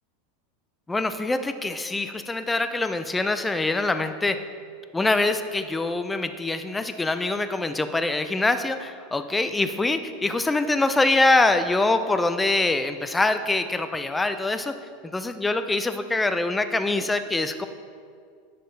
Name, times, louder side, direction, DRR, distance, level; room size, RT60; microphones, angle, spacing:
voice 1, 0.9-4.4 4.9-14.7 15.1-17.7, left 2 dB, 10° left, 9 dB, 0.4 m, -24 dB
10.5 x 6.7 x 3.3 m, 2.1 s
supercardioid pair, 135°, 0 cm